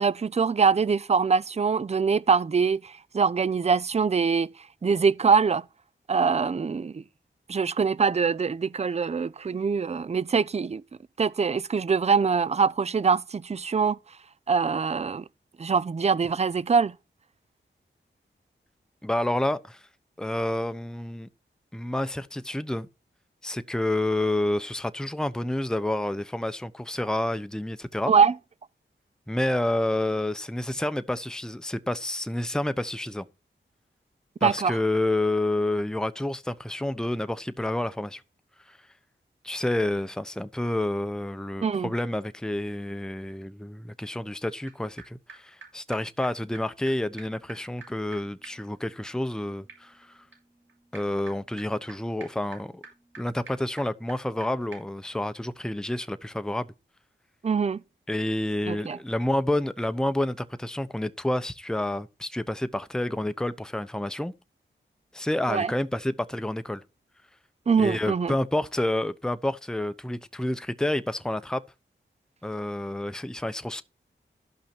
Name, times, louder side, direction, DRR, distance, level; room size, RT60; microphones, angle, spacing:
voice 1, 0.0-4.5 4.8-5.6 6.1-7.0 7.5-10.8 11.2-14.0 14.5-15.2 15.6-16.9 28.1-28.3 34.4-34.7 41.6-41.9 57.4-57.8 58.7-59.0 65.5-65.7 67.7-68.3, right 5 dB, 35° right, 0.5 m, -23 dB
voice 2, 19.0-19.9 20.2-21.3 21.7-22.9 23.4-28.1 29.3-33.3 34.4-38.2 38.7-38.8 39.4-50.2 50.9-52.8 53.2-56.7 58.1-64.3 65.1-66.8 67.8-71.6 72.4-73.8, left 1 dB, 5° left, 0.8 m, -29 dB
sound 1, 44.7-44.8 45.0-45.1 45.3-45.4 45.6-45.7 45.9-46.0 46.2-46.3 46.5-46.6 46.9-47.0 47.2-54.4 54.7-54.8, right 4 dB, 90° right, 5.5 m, -49 dB
13.0 x 5.6 x 4.5 m
wide cardioid pair, 65°, 20 cm